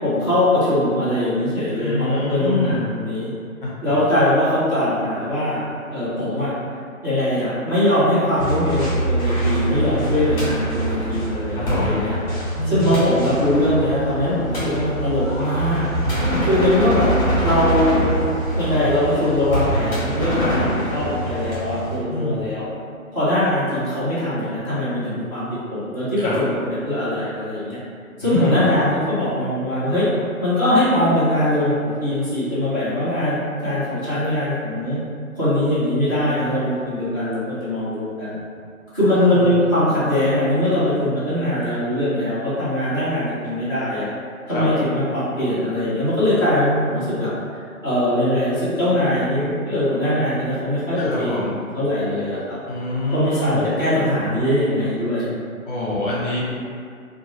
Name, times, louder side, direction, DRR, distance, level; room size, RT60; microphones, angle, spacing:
voice 1, 0.0-3.3 3.8-5.6 5.9-6.5 7.0-12.2 12.7-15.9 16.5-17.1 17.4-18.1 18.5-22.7 23.1-26.6 26.8-27.8 28.2-30.1 30.4-35.0 35.3-38.4 38.9-44.1 44.5-47.3 47.8-51.3 51.7-52.6 53.1-55.3, left 1 dB, 15° right, -16 dB, 0.5 m, -21 dB
voice 2, 1.8-2.8 3.6-3.7 11.5-11.9 12.6-12.9 16.0-16.4 20.4-20.5 22.1-22.4 26.2-26.4 28.2-28.7 39.0-39.4 44.5-44.7 51.0-51.5 52.7-53.7 55.7-56.4, left 2 dB, 40° left, -6 dB, 0.7 m, -26 dB
sound 1, 8.4-22.0, right 1 dB, 15° left, 1.2 m, -24 dB
2.8 x 2.2 x 3.0 m, 2.3 s
figure-of-eight pair, 145°, 42 cm